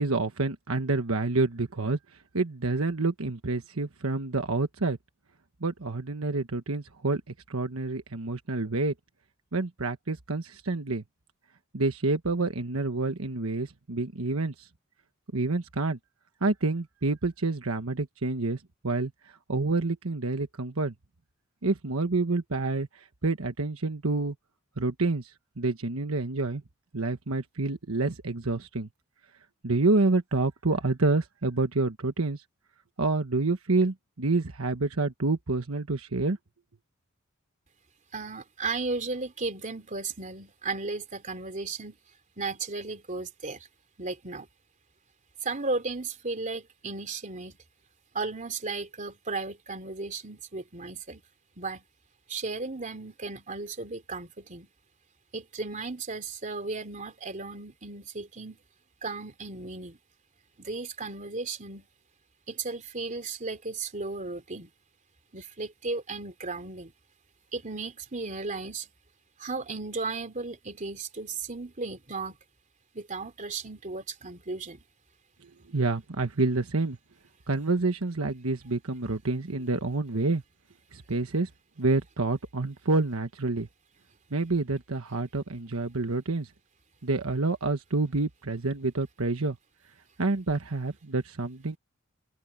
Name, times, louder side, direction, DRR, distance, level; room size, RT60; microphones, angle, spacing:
voice 1, 0.0-2.0 2.3-5.0 5.6-8.9 9.5-11.0 11.7-14.7 15.3-16.0 16.4-18.6 18.8-19.1 19.5-20.9 21.6-24.3 24.8-25.3 25.6-26.6 26.9-28.9 29.6-32.4 33.0-36.4 75.7-77.0 77.5-80.4 80.9-81.5 81.8-83.7 84.3-86.5 87.0-89.6 90.2-91.8, right 3 dB, 75° right, 1.3 m, -28 dB
voice 2, 38.1-42.0 42.4-43.7 44.0-44.5 45.4-47.6 48.1-51.2 51.6-51.8 52.3-54.7 55.3-58.6 59.0-60.0 60.6-61.9 62.5-64.7 65.3-66.9 67.5-68.9 69.4-72.4 72.9-74.8, right 3 dB, 35° right, 3.3 m, -35 dB
head